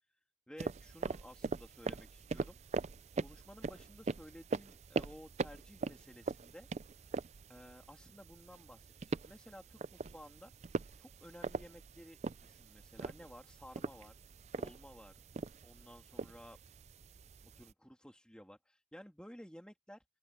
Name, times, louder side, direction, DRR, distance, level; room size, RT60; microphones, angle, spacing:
voice 1, 0.5-2.6 3.2-6.7 7.5-8.9 9.2-10.5 11.0-14.1 14.5-15.1 15.6-16.6 17.4-20.0, equal, 5° left, 2.8 m, -55 dB
sound 1, 0.6-17.7, right 3 dB, 40° right, 0.4 m, -42 dB
open air
head